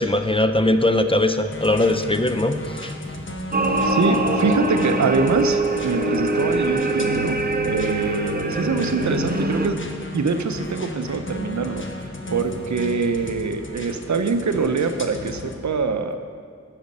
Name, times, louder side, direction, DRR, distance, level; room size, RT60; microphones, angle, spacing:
voice 1, 0.0-2.9, left 1 dB, 20° left, 8 dB, 0.4 m, -20 dB
sound 1, 1.5-15.6, left 1 dB, 45° left, 0.8 m, -35 dB
sound 2, 3.5-9.7, right 2 dB, 30° right, 0.6 m, -23 dB
voice 2, 3.8-7.4 7.7-9.8 10.1-16.2, right 4 dB, 75° right, 8 dB, 0.5 m, -24 dB
8.3 x 5.1 x 5.3 m, 2.1 s
wide cardioid pair, 45°, 29 cm